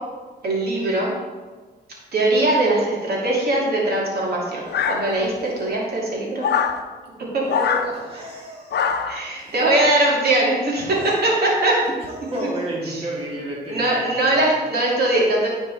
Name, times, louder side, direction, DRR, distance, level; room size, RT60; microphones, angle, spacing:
voice 1, 0.4-1.1 2.1-6.5 7.3-7.5 9.1-11.0 11.2-11.8 12.9-13.0 13.7-15.5, right 2 dB, 65° right, -4 dB, 2.6 m, -21 dB
sound 1, 4.7-5.5 6.4-6.8 7.5-7.9 8.7-9.2, left 6 dB, 75° left, 0.7 m, -23 dB
voice 2, 7.5-8.9 9.3-9.7 10.8-11.2 11.8-14.4, right 1 dB, 35° right, -5 dB, 2.1 m, -32 dB
13.0 x 4.6 x 4.1 m, 1.4 s
cardioid pair, 100°, 18 cm